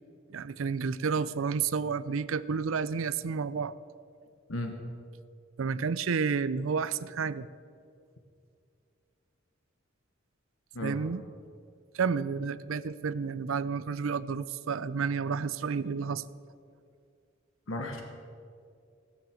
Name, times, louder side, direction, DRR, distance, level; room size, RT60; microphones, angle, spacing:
voice 1, 0.3-3.8 5.6-7.5 10.8-11.2 11.9-16.2, right 5 dB, 75° right, 16 dB, 0.5 m, -30 dB
voice 2, 17.7-18.0, left 1 dB, 70° left, 4 dB, 1.2 m, -34 dB
17.5 x 7.3 x 7.6 m, 2.4 s
head